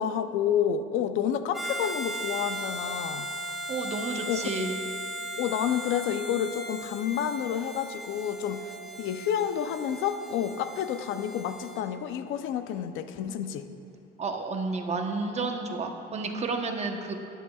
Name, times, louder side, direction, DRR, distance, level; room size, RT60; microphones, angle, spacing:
voice 1, 0.0-3.3 4.2-4.5 5.4-8.6 9.0-13.7, left 9 dB, 90° left, 9 dB, 0.6 m, -29 dB
Harmonica, 1.5-11.8, right 1 dB, ahead, 1.1 m, -37 dB
voice 2, 3.7-4.8 14.2-17.1, right 3 dB, 35° right, 3 dB, 1.0 m, -31 dB
19.0 x 10.0 x 2.4 m, 2.6 s
cardioid pair, 140°, 20 cm